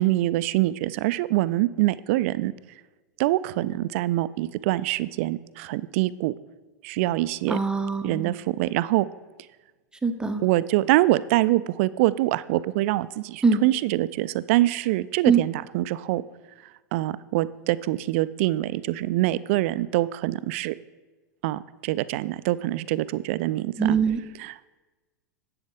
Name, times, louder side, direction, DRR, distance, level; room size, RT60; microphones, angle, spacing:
voice 1, 0.0-2.5 3.2-6.3 6.8-7.6 8.0-9.1 10.4-16.2 16.9-20.7 21.4-24.0 24.4-24.5, right 16 dB, 45° right, 17 dB, 0.4 m, -24 dB
voice 2, 7.5-8.3 10.0-10.4 13.4-13.6 15.3-15.4 23.8-24.2, right 5 dB, 10° right, 7 dB, 0.7 m, -22 dB
11.5 x 7.9 x 3.7 m, 1.2 s
figure-of-eight pair, 90°, 10 cm